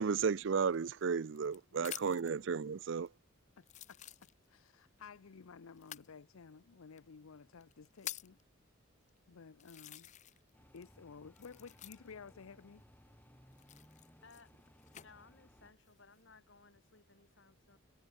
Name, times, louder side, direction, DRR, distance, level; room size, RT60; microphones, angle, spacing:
voice 1, 0.0-3.1, right 5 dB, 60° right, 0.5 m, -33 dB
sound 1, 0.7-2.4 3.1-3.2 3.6-4.7 5.8-6.1 7.0-7.1 7.6-8.4 9.1-9.2 9.6-10.5 10.8-12.3 13.5-15.1 15.7-16.2, left 12 dB, 35° left, 0.6 m, -49 dB
voice 2, 3.6-4.0 4.5-8.4 9.3-10.1 10.7-12.8, left 5 dB, 85° left, 0.6 m, -54 dB
sound 2, 10.5-15.7, equal, 10° left, 5.7 m, -63 dB
voice 3, 14.2-14.6 14.9-17.8, left 4 dB, 60° left, 2.5 m, -61 dB
head